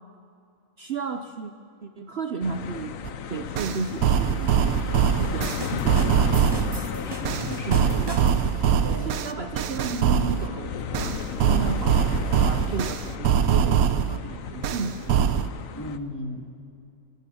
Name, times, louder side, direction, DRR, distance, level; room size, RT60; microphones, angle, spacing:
voice 1, 0.8-1.5 1.8-3.0 3.3-4.9 5.2-6.3 7.7-8.4 9.0-15.4, right 4 dB, 55° right, 8 dB, 0.9 m, -33 dB
sound 1, 2.4-16.0, left 7 dB, 75° left, 1.2 m, -34 dB
sound 2, 3.0-3.1 3.6-6.8 7.2-10.5 10.9-14.2 14.6-15.5, right 8 dB, 85° right, 1.2 m, -23 dB
sound 3, 5.4-8.6, right 2 dB, 20° right, 0.9 m, -38 dB
voice 2, 6.8-7.9 8.8-9.1 15.7-16.5, left 1 dB, 15° left, 1 dB, 2.3 m, -36 dB
27.0 x 17.0 x 7.0 m, 2.5 s
omnidirectional pair, 1.4 m